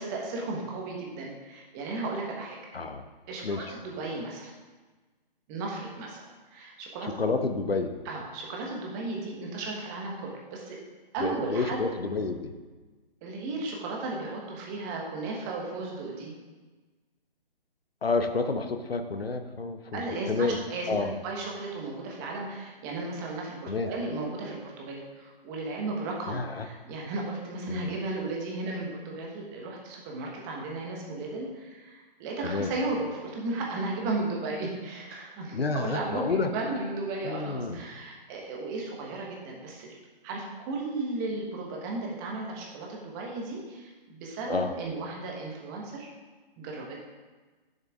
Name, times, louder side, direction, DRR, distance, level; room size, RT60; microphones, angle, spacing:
voice 1, 0.0-2.6 3.3-4.5 5.5-6.2 6.5-7.2 8.0-10.8 11.1-11.8 13.2-16.3 19.9-40.0 40.2-46.1 46.6-47.0, right 3 dB, 20° right, -1 dB, 1.3 m, -35 dB
voice 2, 2.7-3.0 3.4-3.7 7.0-8.0 11.2-12.5 18.0-20.6 20.9-21.1 23.7-23.9 26.3-26.7 27.7-27.9 32.4-32.7 35.5-36.5 37.2-37.8 44.5-44.7, left 4 dB, 85° left, 8 dB, 1.0 m, -29 dB
10.5 x 6.8 x 3.6 m, 1.3 s
figure-of-eight pair, 145°, 29 cm